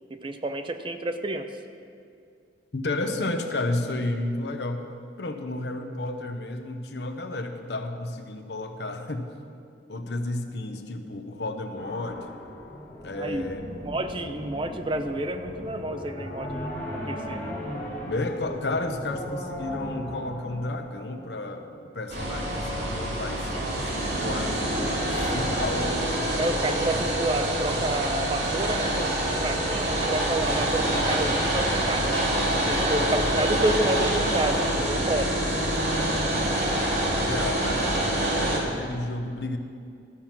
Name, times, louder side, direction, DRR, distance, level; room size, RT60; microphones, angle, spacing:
voice 1, 0.1-1.5 13.2-13.5 13.8-17.5 26.4-32.1 32.6-35.3, right 1 dB, 30° right, 8 dB, 0.5 m, -29 dB
voice 2, 2.7-4.8 5.2-9.3 9.9-12.3 13.0-13.7 18.1-26.0 37.1-37.9 38.2-39.6, left 2 dB, 70° left, 6 dB, 0.8 m, -32 dB
sound 1, 11.8-21.8, equal, 45° left, 3.0 m, -37 dB
sound 2, 22.1-38.6, right 1 dB, 75° right, 2.4 m, -26 dB
13.0 x 7.4 x 5.8 m, 2.4 s
head